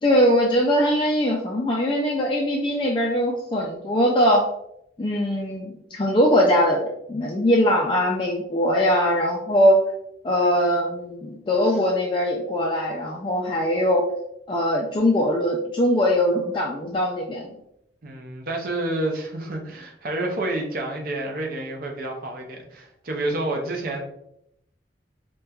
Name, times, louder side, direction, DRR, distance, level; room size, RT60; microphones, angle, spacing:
voice 1, 0.0-4.4 5.0-9.8 10.2-14.0 14.5-17.5, equal, 25° left, -1 dB, 0.3 m, -21 dB
voice 2, 18.0-24.0, right 2 dB, 50° right, 1 dB, 0.6 m, -29 dB
4.2 x 2.2 x 2.3 m, 0.77 s
head